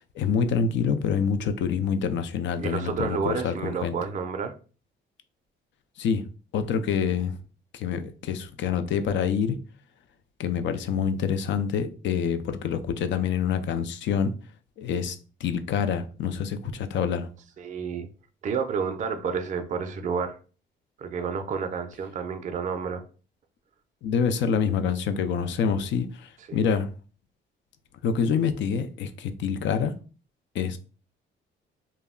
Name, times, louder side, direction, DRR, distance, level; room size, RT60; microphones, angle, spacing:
voice 1, 0.2-4.0 6.0-6.2 6.5-7.3 7.7-9.6 10.4-14.3 14.8-17.3 24.0-26.9 28.0-29.9 30.5-30.8, left 6 dB, 70° left, 0.4 m, -26 dB
voice 2, 2.6-4.5 17.6-18.1 18.4-20.4 21.0-23.0 26.5-26.7, right 6 dB, 40° right, 0.4 m, -30 dB
2.2 x 2.0 x 3.5 m
cardioid pair, 90°, 20 cm